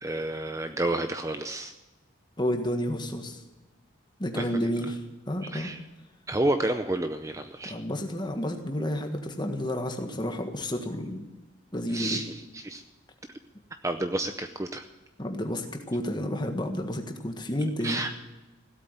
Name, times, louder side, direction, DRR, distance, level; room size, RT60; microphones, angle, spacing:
voice 1, 0.0-1.7 4.3-4.5 5.4-5.8 6.3-7.8 11.9-12.8 13.8-14.9 17.8-18.1, right 1 dB, 15° right, 8 dB, 0.6 m, -30 dB
voice 2, 2.4-3.4 4.2-5.0 5.3-5.7 7.6-11.3 11.7-12.2 15.2-18.0, equal, 20° left, 5 dB, 1.6 m, -30 dB
16.5 x 8.3 x 9.2 m, 1.1 s
head